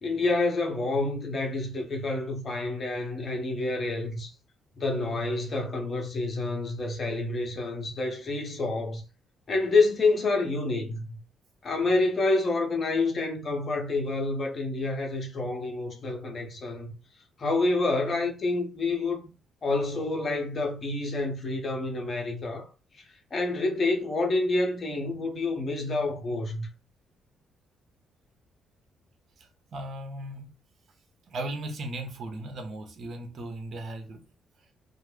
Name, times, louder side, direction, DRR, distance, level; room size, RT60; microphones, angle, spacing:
voice 1, 0.0-4.3 4.8-9.0 9.5-11.2 11.6-16.9 17.4-19.2 19.6-22.7 23.0-23.1 23.3-26.7, left 3 dB, 40° left, 0.8 m, -28 dB
voice 2, 29.4-30.5 31.3-34.2, right 1 dB, 55° right, 0.7 m, -37 dB
2.2 x 2.0 x 3.1 m
cardioid pair, 90°, 0 cm